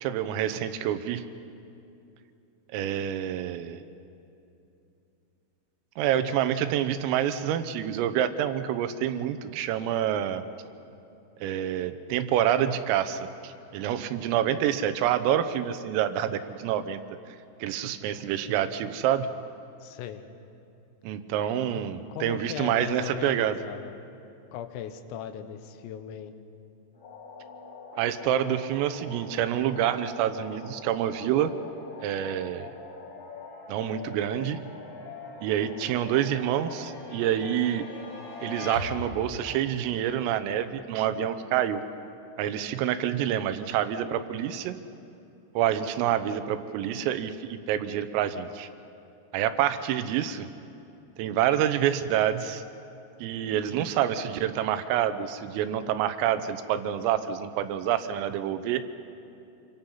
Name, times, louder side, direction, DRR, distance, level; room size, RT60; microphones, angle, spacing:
voice 1, 0.0-1.2 2.7-3.8 6.0-10.4 11.4-17.0 17.6-19.3 21.0-23.6 27.9-31.5 32.0-32.7 33.7-34.6 35.4-37.8 38.4-41.8 42.4-44.8 45.6-48.7 49.3-50.5 51.2-52.6 53.2-58.8, right 10 dB, 85° right, 11 dB, 3.6 m, -27 dB
voice 2, 19.8-20.2 21.8-24.1 24.5-26.3, left 9 dB, 85° left, 8 dB, 3.8 m, -38 dB
sound 1, 26.9-39.6, left 2 dB, 25° left, 3.6 m, -46 dB
sound 2, 27.0-39.6, left 5 dB, 60° left, 2.8 m, -45 dB
27.0 x 24.5 x 5.7 m, 2.8 s
omnidirectional pair, 5.9 m